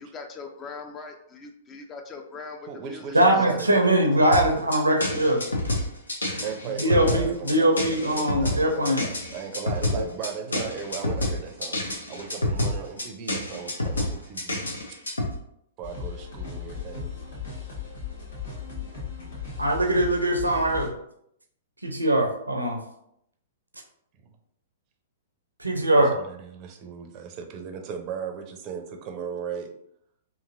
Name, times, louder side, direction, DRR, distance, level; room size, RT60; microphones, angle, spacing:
voice 1, 0.0-3.0 3.5-3.6, left 4 dB, 25° left, 4 dB, 0.4 m, -41 dB
voice 2, 2.6-4.3 6.4-14.6 15.8-17.1 26.1-29.7, right 7 dB, 35° right, 4 dB, 0.5 m, -37 dB
voice 3, 3.1-5.4 6.8-9.1 10.5-10.6 19.6-20.9 21.8-22.8 25.6-26.2, right 1 dB, 85° right, 3 dB, 0.6 m, -22 dB
sound 1, 4.3-15.3, left 2 dB, 80° left, 0.6 m, -28 dB
sound 2, 15.8-20.9, left 6 dB, 60° left, 1.1 m, -37 dB
3.0 x 2.6 x 2.5 m, 0.73 s
figure-of-eight pair, 110°, 0 cm